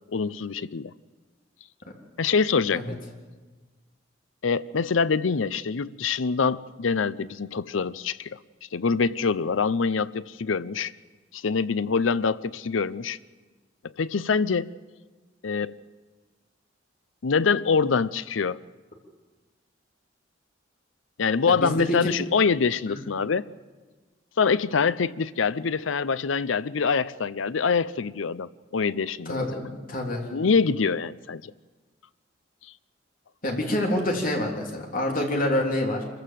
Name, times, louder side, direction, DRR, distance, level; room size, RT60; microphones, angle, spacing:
voice 1, 0.1-0.9 2.2-2.8 4.4-8.4 8.7-10.9 11.3-13.2 13.8-14.7 15.4-15.8 17.2-18.6 21.2-23.5 24.4-29.4 30.3-31.5, left 5 dB, 85° left, 0.6 m, -25 dB
voice 2, 21.5-22.1 22.9-23.0 29.2-30.3 33.4-36.0, left 1 dB, 45° left, 3.3 m, -27 dB
25.5 x 15.0 x 7.6 m
head